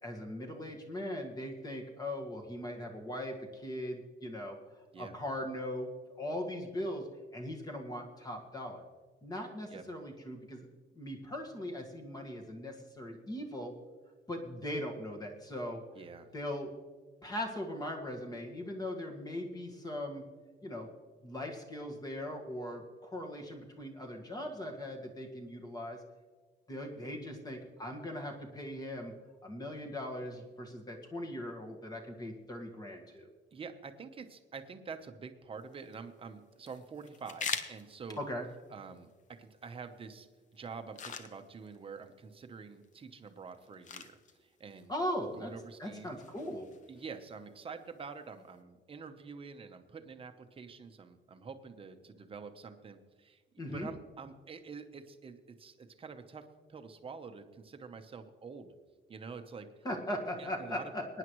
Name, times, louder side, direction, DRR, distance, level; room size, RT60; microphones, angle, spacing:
voice 1, 0.0-4.6 5.0-7.1 7.3-8.8 9.2-10.7 10.9-13.7 14.3-15.8 16.3-16.7 17.2-20.3 20.6-20.9 21.2-26.0 26.7-29.1 29.4-33.3 38.2-38.4 44.9-45.5 45.8-46.7 53.6-53.9 59.8-61.0, left 1 dB, 20° left, 2 dB, 1.7 m, -39 dB
voice 2, 15.9-16.3 33.1-33.2 33.5-38.2 38.7-44.9 45.3-46.3 46.9-58.7 59.1-59.9 60.4-60.9, right 5 dB, 30° right, 7 dB, 1.0 m, -47 dB
sound 1, 35.6-48.6, left 6 dB, 40° left, 0.8 m, -47 dB
22.0 x 9.9 x 3.1 m, 1.4 s
cardioid pair, 160°, 19 cm